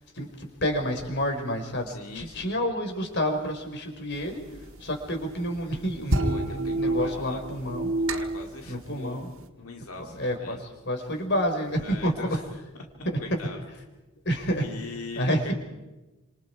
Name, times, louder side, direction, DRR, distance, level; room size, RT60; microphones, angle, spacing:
voice 1, 0.6-1.9 2.1-4.4 4.8-7.9 8.7-9.3 10.0-12.4 13.0-13.2 14.2-14.6 15.1-15.5, equal, 55° left, 4 dB, 5.1 m, -29 dB
voice 2, 1.9-2.6 6.2-7.6 8.1-9.3 9.6-10.6 11.8-12.4 12.9-13.6 14.6-15.5, left 3 dB, 90° left, 2 dB, 2.4 m, -41 dB
sound 1, 4.1-9.5, right 1 dB, 70° right, 1.8 m, -29 dB
29.0 x 27.0 x 4.8 m, 1.1 s
head